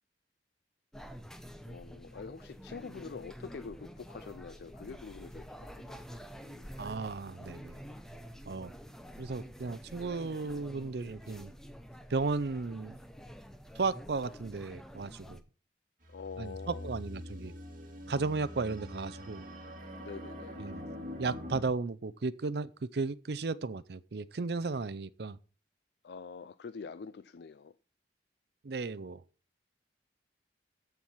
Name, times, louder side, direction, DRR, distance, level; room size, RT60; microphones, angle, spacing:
sound 1, 0.9-15.4, equal, 5° left, 0.7 m, -48 dB
voice 1, 1.7-6.8 16.1-16.9 20.0-20.6 26.0-27.7, left 5 dB, 65° left, 0.4 m, -46 dB
voice 2, 6.8-7.7 8.5-8.7 9.2-11.5 12.1-13.0 13.8-15.4 16.4-17.5 18.1-19.4 20.6-20.8 21.2-25.4 28.6-29.2, right 4 dB, 60° right, 0.5 m, -35 dB
sound 2, 16.0-21.6, equal, 45° right, 2.2 m, -44 dB
14.0 x 4.7 x 5.6 m
head